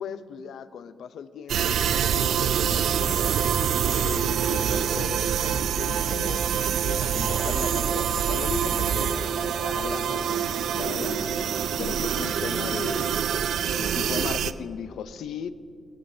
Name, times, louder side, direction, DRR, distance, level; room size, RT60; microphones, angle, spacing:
voice 1, 0.0-3.4 4.0-6.4 6.8-11.3 11.8-13.1 13.7-15.5, left 7 dB, 85° left, 12 dB, 0.6 m, -37 dB
sound 1, 1.5-14.5, right 8 dB, 85° right, 0.4 m, -25 dB
sound 2, 7.2-13.1, equal, 5° left, 2.7 m, -40 dB
17.5 x 17.0 x 2.7 m, 2.4 s
cardioid pair, 100°, 0 cm